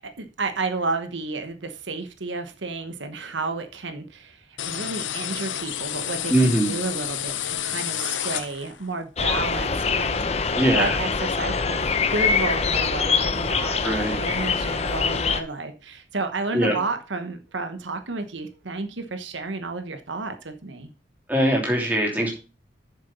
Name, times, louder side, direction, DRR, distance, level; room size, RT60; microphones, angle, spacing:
voice 1, 0.0-20.9, right 3 dB, 80° right, 1.1 m, -31 dB
sound 1, 4.6-8.9, left 11 dB, 85° left, 0.7 m, -30 dB
voice 2, 6.3-6.7 10.5-10.9 13.8-14.2 16.5-16.8 21.3-22.3, right 1 dB, 10° right, 2.9 m, -21 dB
sound 2, 9.2-15.4, left 5 dB, 35° left, 0.7 m, -24 dB
7.9 x 6.8 x 5.4 m
head